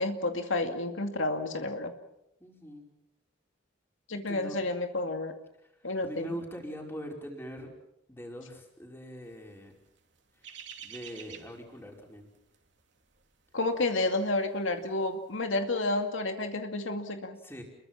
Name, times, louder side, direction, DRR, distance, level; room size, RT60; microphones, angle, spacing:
voice 1, 0.0-1.9 4.1-5.4 5.8-6.3 13.5-17.4, left 2 dB, 85° left, 5 dB, 2.4 m, -30 dB
voice 2, 2.4-2.8 4.1-4.6 5.6-7.7 8.1-9.7 10.4-10.5 10.8-12.3 17.4-17.6, equal, 10° left, 1 dB, 5.0 m, -42 dB
sound 1, 9.5-14.6 14.8-15.1, right 8 dB, 65° right, 2.9 m, -48 dB
30.0 x 22.5 x 5.9 m, 0.82 s
head